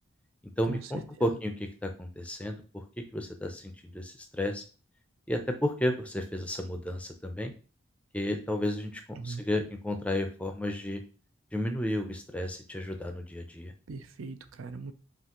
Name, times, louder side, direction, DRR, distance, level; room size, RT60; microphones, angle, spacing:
voice 1, 0.6-2.8 3.1-4.6 5.3-7.5 8.1-11.0 11.5-13.7, left 1 dB, 5° left, 5 dB, 0.4 m, -32 dB
voice 2, 13.9-14.9, right 4 dB, 80° right, 10 dB, 0.5 m, -39 dB
5.7 x 2.5 x 2.9 m, 0.36 s
head